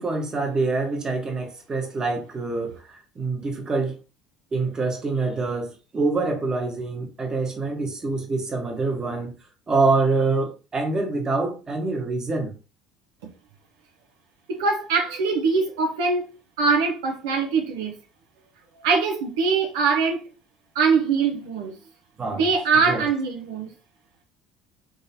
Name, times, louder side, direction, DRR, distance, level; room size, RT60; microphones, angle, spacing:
voice 1, 0.0-4.0 4.5-9.3 9.7-12.5 22.2-22.5 22.8-23.1, right 3 dB, 30° right, 1.3 m, -25 dB
voice 2, 14.5-16.3 16.6-17.9 18.8-20.2 20.7-21.7 22.4-23.7, right 5 dB, 80° right, 0.8 m, -22 dB
3.7 x 3.2 x 2.8 m
hypercardioid pair, 70°, 2 cm